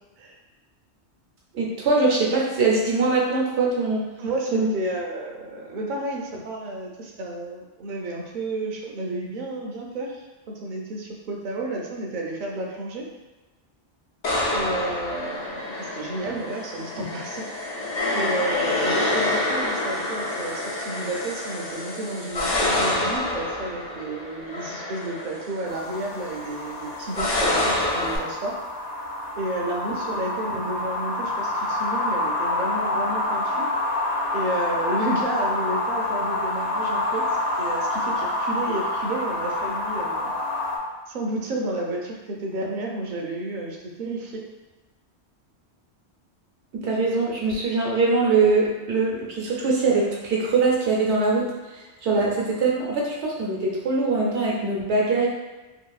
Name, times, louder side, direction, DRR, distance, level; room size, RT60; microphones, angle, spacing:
voice 1, 1.5-4.0 4.5-4.7 46.7-51.5 52.0-55.3, right 3 dB, 85° right, -3 dB, 1.0 m, -22 dB
voice 2, 4.2-13.1 14.5-17.5 18.1-28.6 29.4-33.7 34.3-40.3 41.1-44.4, right 2 dB, 60° right, -1 dB, 0.6 m, -31 dB
sound 1, 14.2-28.2, left 2 dB, 50° left, 0.5 m, -27 dB
sound 2, 25.7-40.8, left 2 dB, 70° left, 0.8 m, -27 dB
2.8 x 2.6 x 2.3 m, 1.1 s
omnidirectional pair, 1.1 m